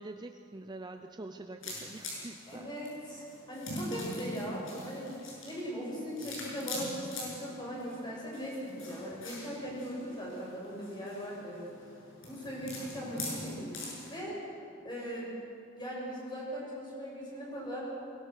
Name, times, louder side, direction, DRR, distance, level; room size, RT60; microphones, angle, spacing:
voice 1, 0.0-2.7, right 2 dB, 20° right, 6 dB, 0.6 m, -45 dB
sound 1, 1.6-14.2, left 1 dB, 90° left, 7.7 m, -43 dB
voice 2, 2.5-5.1 5.4-11.7 12.3-14.4 14.8-15.3 15.8-17.8, equal, 20° left, -4 dB, 7.5 m, -39 dB
22.0 x 22.0 x 6.6 m, 2.6 s
head